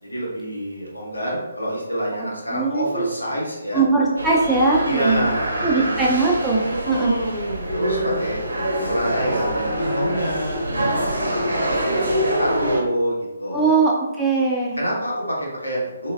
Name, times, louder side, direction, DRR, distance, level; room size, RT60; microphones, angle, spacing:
voice 1, 0.0-3.8 4.8-6.0 6.7-8.4 8.8-13.8 14.8-16.1, equal, 85° left, -4 dB, 1.0 m, -27 dB
voice 2, 2.5-3.1 3.7-5.3 5.6-7.1 13.5-13.9 14.2-14.8, right 3 dB, 5° right, -6 dB, 0.4 m, -20 dB
sound 1, 4.2-12.8, right 1 dB, 70° right, 0.6 m, -25 dB
3.1 x 2.3 x 2.2 m, 0.99 s
figure-of-eight pair, 140°, 0 cm